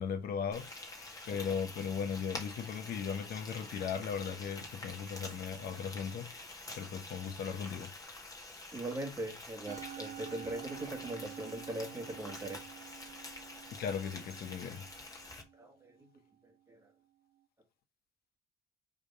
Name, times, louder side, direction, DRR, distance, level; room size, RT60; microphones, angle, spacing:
voice 1, 0.0-7.9 13.8-14.9, left 7 dB, 65° left, 1.0 m, -38 dB
Frying (food), 0.5-15.4, left 2 dB, 20° left, 1.8 m, -47 dB
voice 2, 8.7-12.6 15.5-16.1 16.4-16.9, right 1 dB, 15° right, 1.6 m, -41 dB
Musical instrument, 9.7-16.1, right 12 dB, 50° right, 0.6 m, -49 dB
5.0 x 3.5 x 5.3 m
cardioid pair, 110°, 17 cm